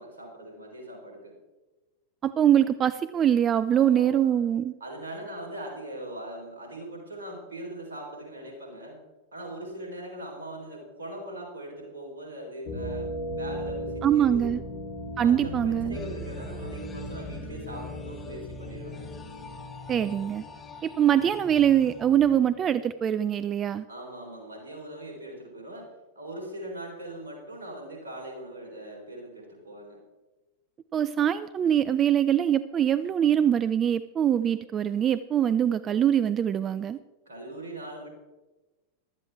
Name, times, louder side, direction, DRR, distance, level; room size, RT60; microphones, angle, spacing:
voice 1, 0.0-1.4 3.7-4.4 4.8-9.0 9.3-14.5 15.2-19.1 23.9-30.0 37.3-38.1, right 1 dB, 70° right, 0 dB, 3.7 m, -41 dB
voice 2, 2.2-4.7 14.0-14.6 15.2-16.0 19.9-20.4 20.8-23.8 30.9-37.0, right 9 dB, 25° right, 14 dB, 0.3 m, -23 dB
sound 1, 12.7-21.3, equal, 50° left, 3.1 m, -37 dB
sound 2, 15.9-22.9, left 5 dB, 20° left, 1.9 m, -45 dB
15.5 x 12.0 x 3.4 m, 1.1 s
figure-of-eight pair, 90°, 0 cm